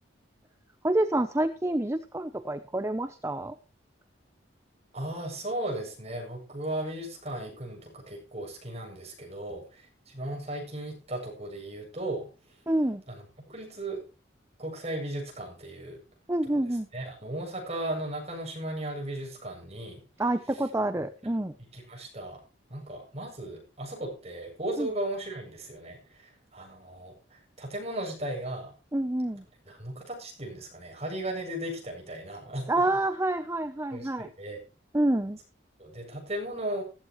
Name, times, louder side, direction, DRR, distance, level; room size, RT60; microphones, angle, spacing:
voice 1, 0.8-3.5 12.7-13.0 16.3-16.9 20.2-21.6 24.8-24.9 28.9-29.4 32.7-34.3 34.9-35.4, right 1 dB, 15° right, 10 dB, 0.7 m, -27 dB
voice 2, 4.9-12.6 13.1-14.0 14.6-16.0 16.5-16.6 16.9-20.0 21.6-22.4 22.7-28.7 29.7-32.8 33.9-34.6 35.8-36.8, right 1 dB, 35° right, 1 dB, 7.7 m, -36 dB
15.0 x 15.0 x 3.2 m, 0.32 s
head